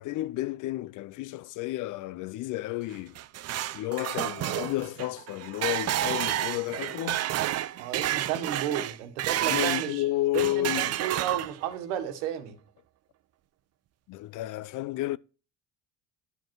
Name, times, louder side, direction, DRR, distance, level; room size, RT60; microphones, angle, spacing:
voice 1, 0.0-3.2 3.7-7.3 9.4-10.9 14.1-15.2, left 16 dB, 60° left, 0.5 m, -31 dB
sound 1, 2.9-9.9 10.3-11.7, right 13 dB, 45° right, 0.5 m, -30 dB
voice 2, 7.8-10.0 10.3-12.6, right 10 dB, 90° right, 1.5 m, -33 dB
11.0 x 5.2 x 4.6 m
supercardioid pair, 85°, 35 cm